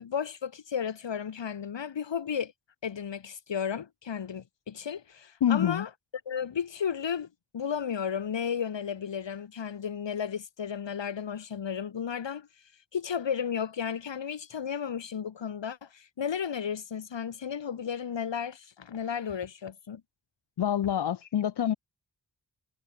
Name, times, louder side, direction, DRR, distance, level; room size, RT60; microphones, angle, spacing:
voice 1, 0.0-2.5 2.8-5.9 6.3-7.3 7.5-12.5 12.9-20.0, left 7 dB, 85° left, 3.2 m, -33 dB
voice 2, 5.4-5.9 20.6-21.7, left 10 dB, 65° left, 0.7 m, -26 dB
cardioid pair, 40°, 43 cm